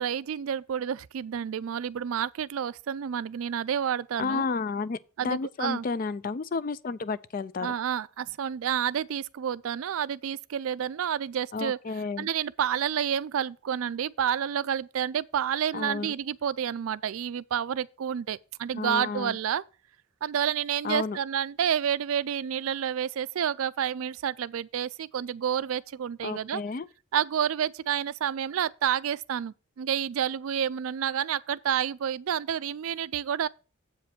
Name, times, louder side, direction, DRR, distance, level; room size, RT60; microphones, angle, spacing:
voice 1, 0.0-4.5 5.2-5.9 7.6-11.8 12.2-19.6 20.2-26.6 27.1-33.5, right 9 dB, 75° right, 0.4 m, -29 dB
voice 2, 4.2-7.7 11.5-12.3 15.7-16.1 18.7-19.4 20.8-21.2 26.2-26.9, left 4 dB, 40° left, 0.3 m, -31 dB
7.8 x 5.1 x 5.8 m
head